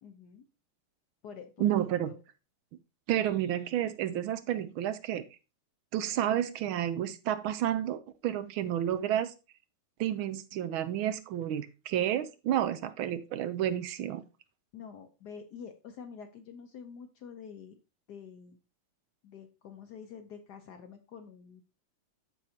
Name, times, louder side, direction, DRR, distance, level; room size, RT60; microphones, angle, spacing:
voice 1, 0.0-0.4 1.2-1.7 2.0-2.2 14.7-17.7 18.1-18.6 19.2-21.6, left 6 dB, 65° left, 7 dB, 1.1 m, -47 dB
voice 2, 1.6-2.1 3.1-5.3 5.9-9.3 10.0-14.2, right 11 dB, 75° right, 12 dB, 1.4 m, -30 dB
12.5 x 4.6 x 2.8 m, 0.30 s
omnidirectional pair, 2.4 m